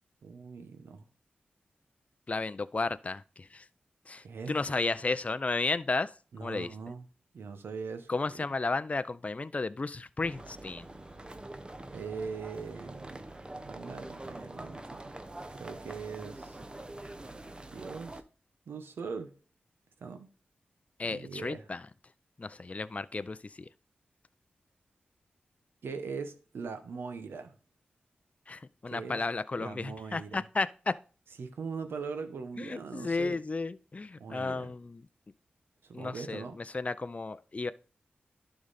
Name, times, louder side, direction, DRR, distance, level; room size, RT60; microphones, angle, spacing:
voice 1, 0.2-1.0 4.2-4.8 6.3-7.0 7.3-8.5 11.9-13.2 13.5-15.1 15.5-16.6 17.7-18.2 18.7-19.3 20.0-20.3 21.1-21.7 25.8-27.6 28.9-29.2 29.6-30.4 31.4-33.4 34.2-34.7 35.8-36.6, right 5 dB, 85° right, 0.9 m, -41 dB
voice 2, 2.3-3.6 4.1-6.1 6.4-6.7 8.1-10.9 21.0-21.8 22.4-23.7 28.5-30.9 32.6-35.0 35.9-37.7, left 3 dB, 35° left, 0.4 m, -33 dB
sound 1, 10.2-18.2, right 2 dB, 25° right, 0.7 m, -45 dB
11.0 x 3.9 x 4.0 m
cardioid pair, 40°, 4 cm